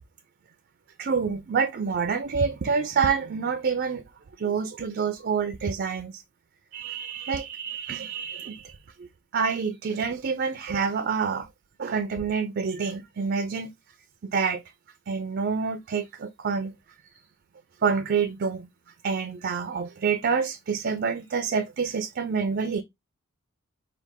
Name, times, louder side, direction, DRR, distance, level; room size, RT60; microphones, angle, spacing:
voice 1, 1.0-4.0 4.4-6.2 6.7-9.1 9.3-11.5 11.8-13.7 14.3-14.6 15.1-16.7 17.8-18.7 19.0-22.8, right 5 dB, 50° right, 0.4 m, -27 dB
4.7 x 2.4 x 3.5 m
head